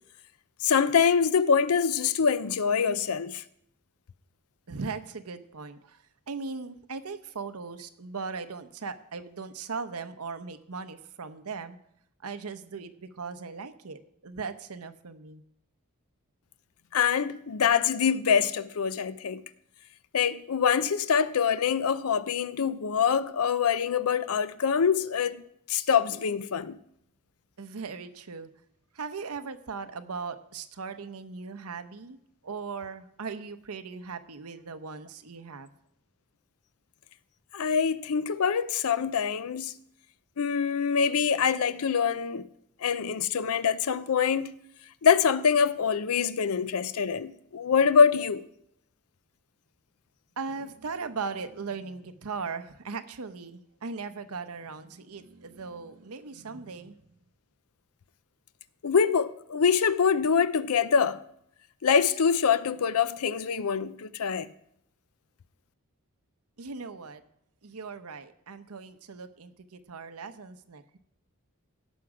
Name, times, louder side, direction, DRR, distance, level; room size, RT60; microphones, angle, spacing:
voice 1, 0.6-3.4 16.9-19.4 20.1-25.4 25.7-26.8 37.5-39.8 40.4-42.5 42.8-44.6 45.0-48.5 58.8-61.2 61.8-64.5, left 6 dB, 80° left, 0.5 m, -25 dB
voice 2, 4.7-11.8 12.2-15.4 27.6-28.5 28.9-32.2 32.4-35.7 50.4-57.0 66.6-67.2 67.6-71.0, right 4 dB, 85° right, 0.8 m, -38 dB
17.0 x 6.2 x 4.9 m
head